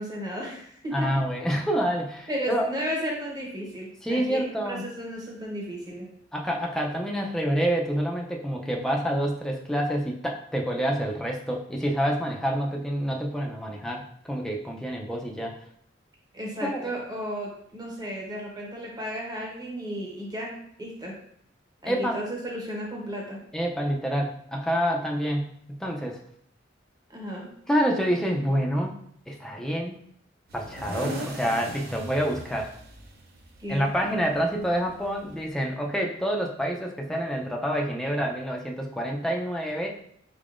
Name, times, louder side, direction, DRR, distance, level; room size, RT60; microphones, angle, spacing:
voice 1, 0.0-1.2 2.3-4.4 4.6-6.1 16.3-21.1 21.8-23.4 27.1-27.5 33.6-33.9, equal, 20° right, -2 dB, 1.0 m, -34 dB
voice 2, 0.9-2.7 4.0-4.8 6.3-15.6 16.6-16.9 21.9-22.2 23.5-26.2 27.7-28.9 29.3-30.0 30.5-32.7 33.7-39.9, equal, 5° left, 0 dB, 0.4 m, -27 dB
sound 1, 30.5-35.5, right 1 dB, 55° right, 0.6 m, -40 dB
3.8 x 3.5 x 2.5 m, 0.67 s
head